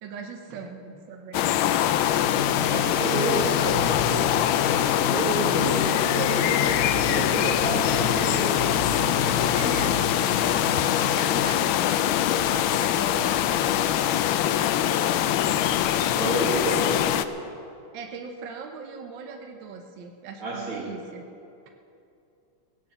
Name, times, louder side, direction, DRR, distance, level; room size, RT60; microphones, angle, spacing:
voice 1, 0.0-1.9 9.5-10.1 10.4-13.3 17.9-21.2, right 5 dB, 65° right, 3 dB, 1.6 m, -40 dB
sound 1, 1.3-17.2, left 11 dB, 75° left, 1.3 m, -23 dB
sound 2, 2.2-11.6, left 4 dB, 60° left, 0.9 m, -33 dB
voice 2, 2.7-4.3 4.7-8.6 16.0-17.0 20.4-20.9, right 2 dB, 90° right, -3 dB, 3.5 m, -30 dB
18.0 x 9.1 x 7.0 m, 2.6 s
omnidirectional pair, 2.4 m